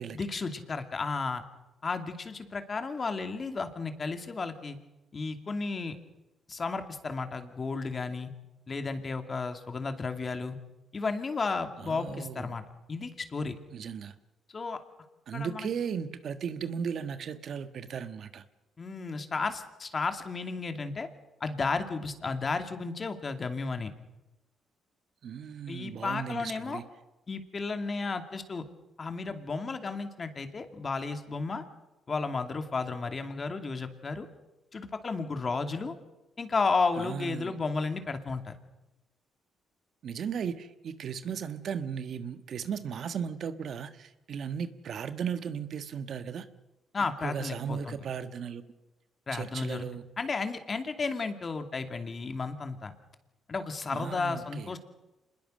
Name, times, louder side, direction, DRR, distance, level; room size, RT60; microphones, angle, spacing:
voice 1, 0.1-1.4 1.8-4.8 5.1-6.0 6.5-8.3 8.7-10.6 10.9-12.6 12.9-13.6 14.5-14.8 15.3-15.7 18.8-21.1 21.4-23.9 25.7-26.8 27.3-28.6 29.0-31.6 32.1-34.3 34.7-36.0 36.4-38.6 46.9-48.0 49.3-49.9 50.2-52.9 53.5-54.8, left 4 dB, 35° left, 2.6 m, -33 dB
voice 2, 11.8-12.6 13.7-14.1 15.3-18.4 25.2-26.8 37.0-37.5 40.0-46.5 47.2-48.6 49.3-50.0 53.9-54.7, right 7 dB, 60° right, 1.4 m, -36 dB
26.5 x 21.0 x 6.5 m
cardioid pair, 90°, 0 cm